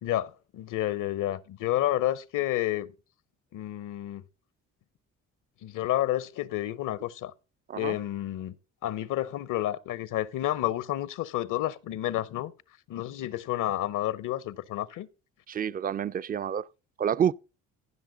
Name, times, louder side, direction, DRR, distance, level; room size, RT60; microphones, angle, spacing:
voice 1, 0.0-2.9 3.5-4.2 5.6-7.3 7.8-8.5 8.8-12.5 12.9-15.1, left 13 dB, 65° left, 0.7 m, -30 dB
voice 2, 15.5-16.7 17.0-17.3, right 8 dB, 25° right, 0.4 m, -28 dB
15.0 x 6.0 x 3.8 m
supercardioid pair, 60°, 34 cm